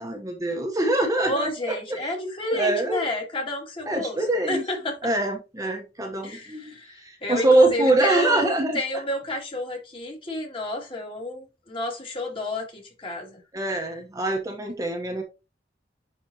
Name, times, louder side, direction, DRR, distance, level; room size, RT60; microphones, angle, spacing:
voice 1, 0.0-2.0 2.5-3.0 3.9-4.6 5.0-8.8 13.5-15.2, right 2 dB, 20° right, 1.0 m, -24 dB
voice 2, 1.2-4.2 4.4-5.1 6.2-13.4, left 1 dB, 30° left, 2.4 m, -30 dB
10.5 x 4.1 x 2.9 m
head